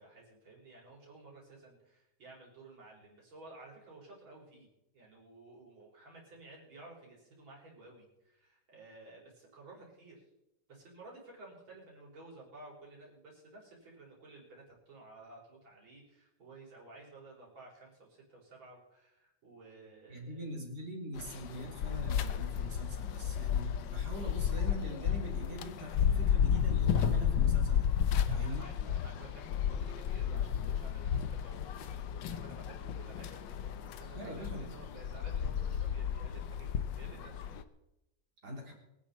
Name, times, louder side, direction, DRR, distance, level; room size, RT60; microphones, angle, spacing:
voice 1, 0.0-4.7 4.9-10.2 10.7-20.5 28.2-37.4, right 2 dB, 80° right, -3 dB, 5.8 m, -54 dB
voice 2, 20.1-27.9 28.3-28.7 34.1-34.7 38.4-38.7, equal, 55° right, 0 dB, 4.0 m, -43 dB
sound 1, 21.2-37.6, left 8 dB, 70° left, 1.5 m, -32 dB
24.0 x 10.5 x 4.2 m, 0.91 s
omnidirectional pair, 2.1 m